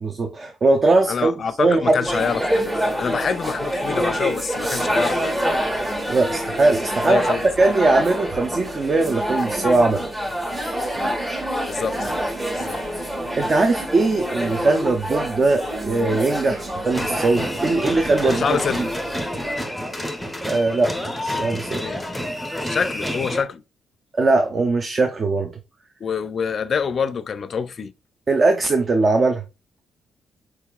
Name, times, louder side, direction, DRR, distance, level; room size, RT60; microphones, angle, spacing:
voice 1, 0.0-1.3 1.6-2.2 6.1-10.1 12.7-12.9 13.4-18.6 20.4-21.8 24.2-25.5 28.3-29.4, right 3 dB, 40° right, 0.6 m, -20 dB
voice 2, 1.1-5.4 7.1-7.5 11.7-12.1 12.5-12.8 18.2-18.9 21.8-22.0 22.6-23.6 26.0-27.9, left 6 dB, 50° left, 0.4 m, -26 dB
sound 1, 2.0-19.6, equal, 20° right, 1.5 m, -26 dB
sound 2, 16.9-23.4, left 1 dB, ahead, 0.7 m, -29 dB
4.7 x 2.8 x 2.3 m
cardioid pair, 90°, 0 cm